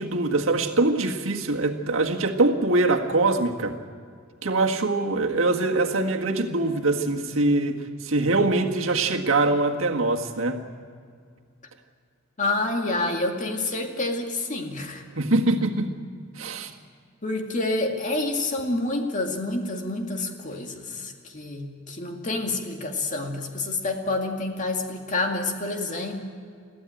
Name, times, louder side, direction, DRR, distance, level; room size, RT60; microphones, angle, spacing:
voice 1, 0.0-3.8 4.4-10.6 15.2-15.9 16.4-16.7, right 2 dB, 75° right, 2 dB, 1.7 m, -23 dB
voice 2, 12.4-15.0 17.2-26.2, left 2 dB, 40° left, 3 dB, 2.2 m, -28 dB
22.0 x 15.0 x 9.1 m, 2.2 s
head